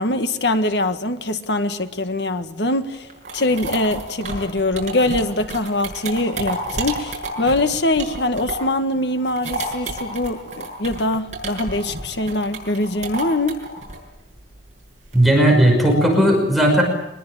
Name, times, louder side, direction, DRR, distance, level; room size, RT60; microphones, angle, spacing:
voice 1, 0.0-3.1 3.3-13.6, left 2 dB, 65° left, 1.7 m, -23 dB
sound 1, 2.9-8.8 9.1-15.4, right 2 dB, 40° right, 7.0 m, -30 dB
voice 2, 15.1-16.8, right 1 dB, ahead, 5.5 m, -15 dB
24.5 x 21.0 x 8.9 m
head